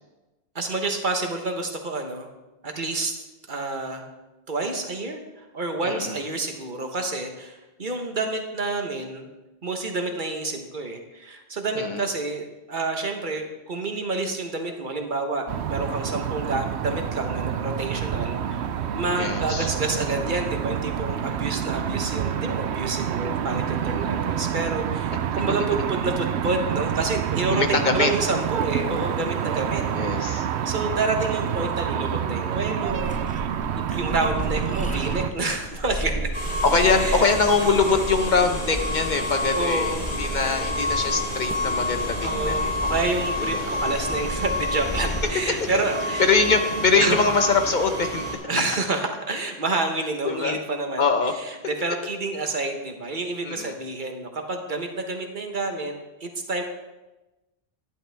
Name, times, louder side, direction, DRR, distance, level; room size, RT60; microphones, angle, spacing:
voice 1, 0.5-2.3 2.6-3.2 3.5-4.1 4.5-9.3 9.6-18.6 18.9-29.8 30.1-33.2 33.7-36.3 37.0-37.3 39.5-40.1 42.2-46.3 47.0-47.2 48.5-51.1 51.4-55.9 56.2-56.6, right 3 dB, 50° right, 4 dB, 1.3 m, -28 dB
voice 2, 5.8-6.2 11.7-12.0 19.2-19.7 25.1-25.2 27.5-28.1 29.9-30.5 36.6-42.8 43.5-43.7 46.2-48.3 50.2-50.6 51.0-51.3 53.4-53.7, left 4 dB, 45° left, 6 dB, 1.0 m, -23 dB
sound 1, 15.5-35.3, right 9 dB, 80° right, 0.9 m, -28 dB
sound 2, 32.9-45.2, right 1 dB, 10° left, 0.8 m, -34 dB
sound 3, 36.3-48.3, left 1 dB, 80° left, 3.2 m, -29 dB
11.5 x 10.5 x 3.4 m, 1.1 s
omnidirectional pair, 1.1 m